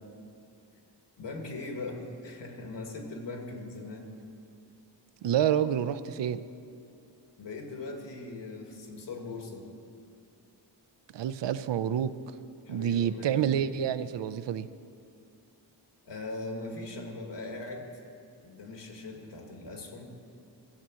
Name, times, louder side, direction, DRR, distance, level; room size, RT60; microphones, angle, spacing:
voice 1, 1.2-4.1 7.4-9.7 12.7-13.6 16.1-17.9 18.4-20.1, left 2 dB, 80° left, 2 dB, 2.0 m, -40 dB
voice 2, 5.2-6.4 11.1-12.1 12.7-14.7, right 9 dB, 80° right, 13 dB, 0.6 m, -28 dB
15.5 x 7.0 x 7.6 m, 2.5 s
wide cardioid pair, 130°, 42 cm